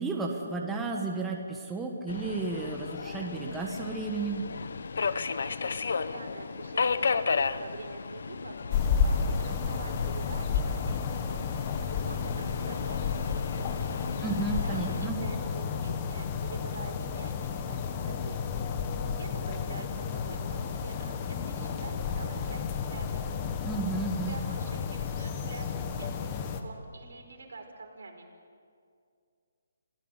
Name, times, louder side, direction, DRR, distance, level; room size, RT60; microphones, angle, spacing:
voice 1, 0.0-4.4 14.2-15.2 23.6-24.4, right 4 dB, 5° right, 0 dB, 1.4 m, -33 dB
Subway metro underground, 2.1-15.1, left 5 dB, 65° left, 1.0 m, -34 dB
voice 2, 5.4-8.5 9.0-11.4 11.8-13.7 14.2-18.8 19.1-23.5 24.1-28.3, right 3 dB, 80° right, 2 dB, 5.1 m, -46 dB
sound 1, 8.7-26.6, left 6 dB, 25° left, 1.5 m, -32 dB
27.0 x 15.5 x 8.2 m, 2.3 s
hypercardioid pair, 165°, 0 cm